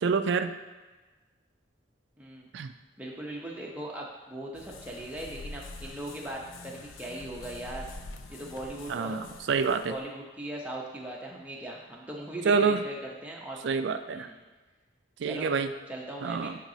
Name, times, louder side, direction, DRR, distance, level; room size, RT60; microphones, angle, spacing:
voice 1, 0.0-0.6 2.5-2.7 8.9-9.9 12.5-12.8 13.6-14.3 15.2-15.7 16.2-16.6, right 5 dB, 65° right, 10 dB, 0.3 m, -27 dB
voice 2, 2.2-2.5 3.0-7.9 8.3-9.2 9.9-13.6 14.1-14.4 15.2-15.5 15.9-16.6, right 1 dB, 10° right, -3 dB, 0.7 m, -39 dB
sound 1, 4.5-10.0, left 3 dB, 90° left, 0.5 m, -45 dB
9.1 x 4.1 x 2.8 m, 1.3 s
head